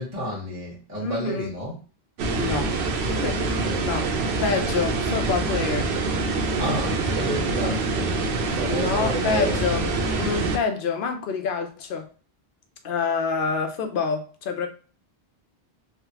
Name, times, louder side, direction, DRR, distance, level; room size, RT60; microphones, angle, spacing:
voice 1, 0.0-1.8 3.6-4.2 6.6-8.2 8.5-9.6, right 1 dB, 15° right, 1.2 m, -31 dB
voice 2, 1.0-1.5 2.3-3.4 3.8-4.1 4.4-5.9 8.7-12.1 12.8-14.7, left 5 dB, 65° left, 0.7 m, -27 dB
sound 1, 2.2-10.6, right 3 dB, 85° right, 0.8 m, -25 dB
3.2 x 2.1 x 2.8 m
omnidirectional pair, 1.0 m